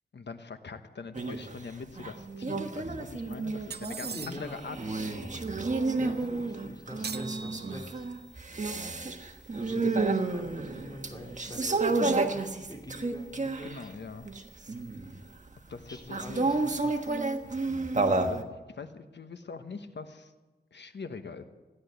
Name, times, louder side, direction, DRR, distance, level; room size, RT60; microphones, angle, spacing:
voice 1, 0.1-5.4 13.6-14.3 15.7-16.5 18.0-18.4 18.7-20.3 20.7-21.5, left 4 dB, 70° left, 8 dB, 1.2 m, -43 dB
sound 1, 1.1-1.6 2.0-13.9 14.3-15.2 16.1-18.4, right 3 dB, 40° right, 1.4 m, -31 dB
sound 2, 3.7-4.6 7.0-8.1, right 6 dB, 60° right, 0.6 m, -41 dB
voice 2, 4.1-4.7 6.0-8.1 9.5-13.9 15.9-17.2, equal, 20° left, -1 dB, 4.4 m, -45 dB
16.0 x 11.0 x 8.1 m, 1.2 s
wide cardioid pair, 65°, 19 cm